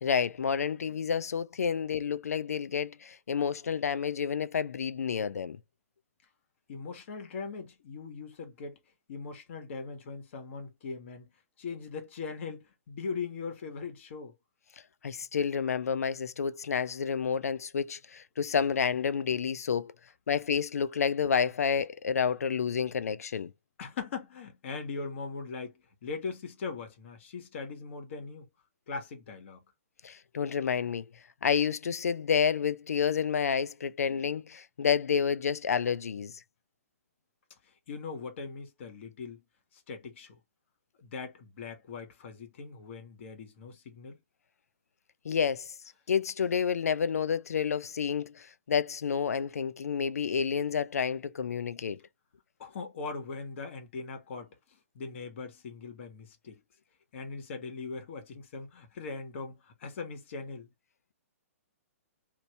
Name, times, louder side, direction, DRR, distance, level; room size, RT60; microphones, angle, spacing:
voice 1, 0.0-5.6 15.0-19.9 20.3-23.5 30.0-31.0 31.4-36.3 45.2-45.7 46.1-52.0, left 7 dB, 85° left, 0.4 m, -29 dB
voice 2, 6.7-8.8 9.1-11.3 11.6-14.3 23.8-28.5 28.9-29.6 37.9-39.4 39.7-40.4 41.0-44.2 52.6-56.6 57.1-60.7, left 4 dB, 55° left, 1.5 m, -40 dB
2.9 x 2.7 x 3.1 m
hypercardioid pair, 140°, 8 cm